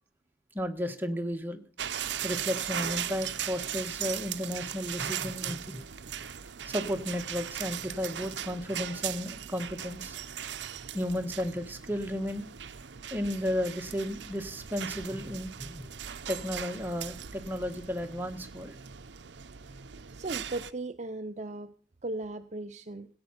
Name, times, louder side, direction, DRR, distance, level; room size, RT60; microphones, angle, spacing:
voice 1, 0.5-1.6 2.2-5.9 6.6-10.2 10.9-12.5 13.1-15.9 16.3-18.8, equal, 10° right, 5 dB, 1.4 m, -33 dB
sound 1, 1.8-20.7, right 9 dB, 85° right, 0.7 m, -38 dB
voice 2, 20.1-21.7 22.0-23.1, right 2 dB, 40° right, 10 dB, 0.6 m, -37 dB
17.0 x 8.7 x 5.7 m, 0.39 s
head